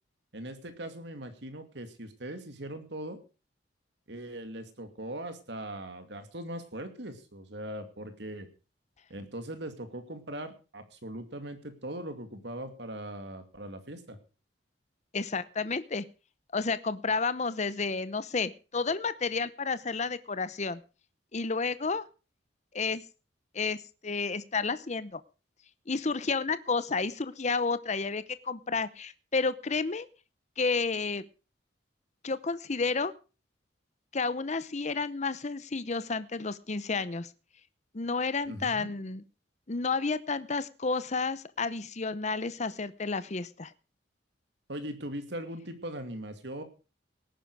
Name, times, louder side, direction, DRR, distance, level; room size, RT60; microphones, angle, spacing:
voice 1, 0.3-3.2 4.1-8.5 9.1-14.2 38.5-38.9 44.7-46.6, right 1 dB, 65° right, 8 dB, 2.5 m, -40 dB
voice 2, 15.1-16.0 16.5-20.8 21.3-22.0 22.7-23.0 23.5-25.2 25.9-30.1 30.6-31.2 32.2-33.1 34.1-37.3 37.9-39.2 39.7-43.7, left 4 dB, 40° left, 15 dB, 0.8 m, -31 dB
18.0 x 10.0 x 4.8 m, 0.33 s
head